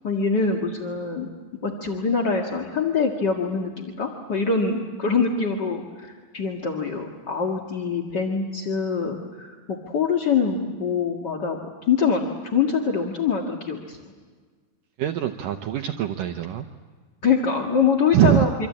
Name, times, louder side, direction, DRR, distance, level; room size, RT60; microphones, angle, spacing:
voice 1, 0.0-1.3 1.6-11.6 11.8-14.0 17.2-18.7, left 5 dB, 40° left, 1 dB, 1.6 m, -24 dB
voice 2, 15.0-16.7 18.1-18.5, right 11 dB, 70° right, 6 dB, 2.2 m, -22 dB
26.5 x 26.0 x 8.6 m, 1.5 s
omnidirectional pair, 4.6 m